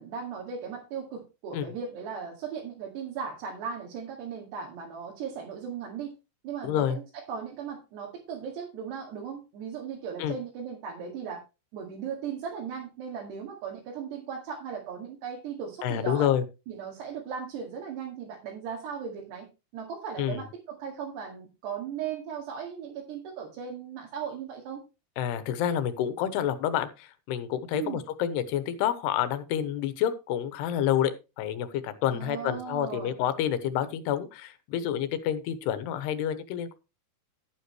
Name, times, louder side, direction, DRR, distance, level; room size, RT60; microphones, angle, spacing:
voice 1, 0.0-6.1 6.4-11.4 11.7-16.3 16.7-19.5 19.7-24.8 27.7-28.0 32.1-33.1, right 7 dB, 70° right, -2 dB, 4.1 m, -37 dB
voice 2, 6.6-7.0 10.2-10.3 15.8-16.4 20.2-20.4 25.2-36.7, left 10 dB, 75° left, 11 dB, 3.0 m, -28 dB
12.0 x 9.6 x 3.2 m, 0.28 s
omnidirectional pair, 5.1 m